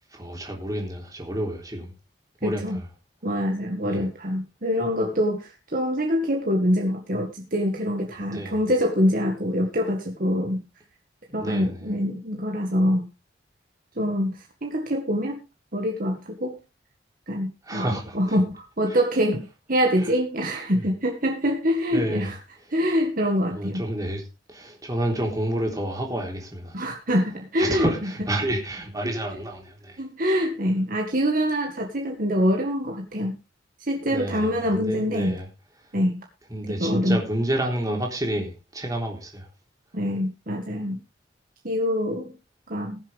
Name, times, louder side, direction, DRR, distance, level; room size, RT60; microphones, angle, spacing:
voice 1, 0.1-1.9 2.4-2.9 3.8-4.0 8.3-8.6 11.4-11.8 17.6-18.4 18.9-19.0 20.0-20.1 20.7-20.9 21.9-22.3 23.5-24.2 24.5-26.8 27.6-30.0 30.2-30.4 34.1-35.5 36.5-39.5, right 1 dB, 20° right, 3.6 m, -29 dB
voice 2, 2.4-2.8 3.2-10.6 11.3-13.1 14.0-15.4 15.7-16.6 17.3-22.3 22.7-23.8 26.7-27.9 29.0-29.1 30.0-33.3 33.8-35.3 35.9-36.2 36.7-37.2 39.9-41.0 41.6-42.3 42.7-43.0, equal, 50° right, 1.8 m, -25 dB
21.0 x 7.3 x 3.6 m
head